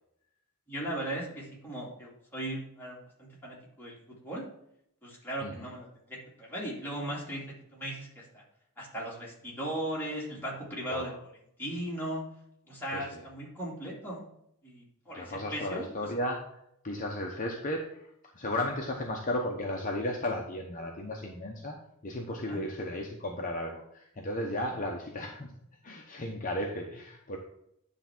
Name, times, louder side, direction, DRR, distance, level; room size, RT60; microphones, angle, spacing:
voice 1, 0.7-4.4 5.0-7.4 7.7-8.4 8.8-11.1 11.6-12.2 12.7-14.2 14.6-15.9 22.5-22.6, right 1 dB, 10° left, -5 dB, 2.4 m, -37 dB
voice 2, 10.9-11.2 12.9-13.2 15.1-25.5 25.8-27.4, left 1 dB, 35° left, 0 dB, 0.9 m, -35 dB
9.7 x 3.5 x 6.0 m, 0.76 s
head